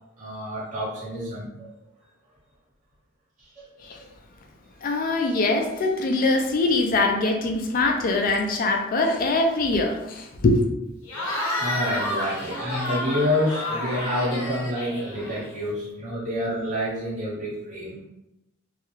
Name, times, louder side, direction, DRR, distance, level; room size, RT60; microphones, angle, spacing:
voice 1, 0.2-1.7 3.4-3.7 4.0-4.1 11.4-18.0, left 1 dB, 40° right, -9 dB, 1.1 m, -28 dB
voice 2, 4.8-10.6, left 2 dB, 45° left, 3 dB, 0.3 m, -23 dB
Cheering / Crowd, 11.1-15.7, left 1 dB, 80° left, 0.7 m, -30 dB
2.3 x 2.1 x 3.0 m, 0.91 s
head